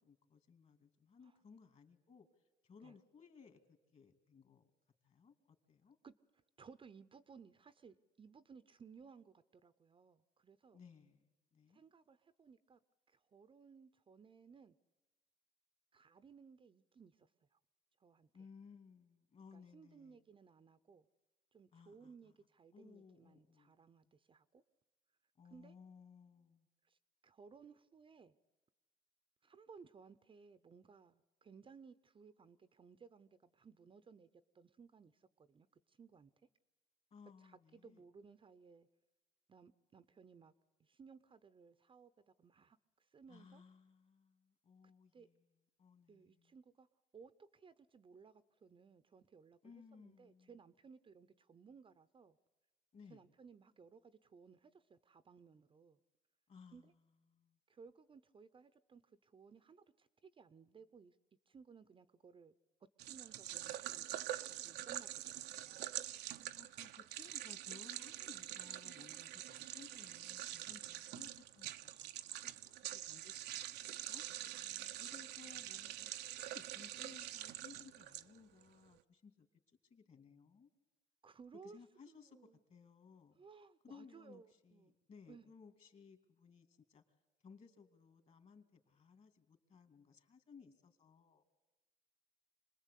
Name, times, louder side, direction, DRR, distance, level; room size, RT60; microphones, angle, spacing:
voice 1, 0.0-2.3 2.6-4.7 5.0-6.0 10.7-11.8 18.3-20.2 21.7-22.3 22.7-23.8 25.4-26.7 37.1-38.0 43.3-45.4 45.8-46.5 49.6-50.6 52.9-53.2 56.5-57.0 57.3-57.6 66.5-72.7 73.1-74.2 74.5-79.5 79.8-80.7 81.6-82.4 82.7-83.4 83.8-87.0 87.4-91.5, left 5 dB, 40° left, 7 dB, 2.6 m, -61 dB
voice 2, 6.6-10.8 11.7-12.8 13.1-14.8 15.9-17.6 18.0-18.3 19.5-21.1 21.5-24.6 25.5-25.7 26.8-27.0 27.2-28.3 29.4-34.3 34.5-36.3 37.4-38.9 39.5-40.5 40.8-43.6 44.8-45.3 46.1-46.9 47.1-52.4 53.1-56.0 56.7-56.9 57.7-61.2 61.5-62.6 63.0-65.9 69.3-69.4 74.4-75.0 75.6-75.7 81.2-81.8 82.1-82.6 83.4-85.0 85.3-85.5, right 5 dB, 30° right, 13 dB, 0.8 m, -61 dB
sound 1, 63.0-78.6, right 13 dB, 80° right, 0.8 m, -45 dB
26.5 x 20.0 x 8.4 m, 1.1 s
cardioid pair, 110°, 17 cm